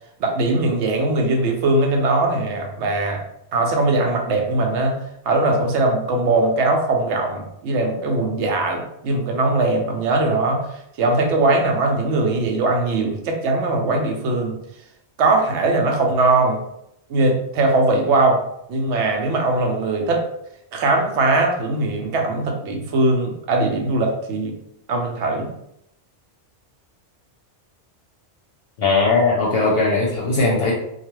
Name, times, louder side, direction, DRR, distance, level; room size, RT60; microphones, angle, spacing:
voice 1, 0.2-3.2 3.5-5.0 5.3-14.6 15.2-16.6 17.1-18.4 18.7-20.2 20.7-24.6 24.9-25.5, right 2 dB, 80° right, 3 dB, 0.9 m, -20 dB
voice 2, 28.8-30.7, left 3 dB, 65° left, -3 dB, 0.7 m, -18 dB
2.3 x 2.3 x 2.9 m, 0.78 s
omnidirectional pair, 1.2 m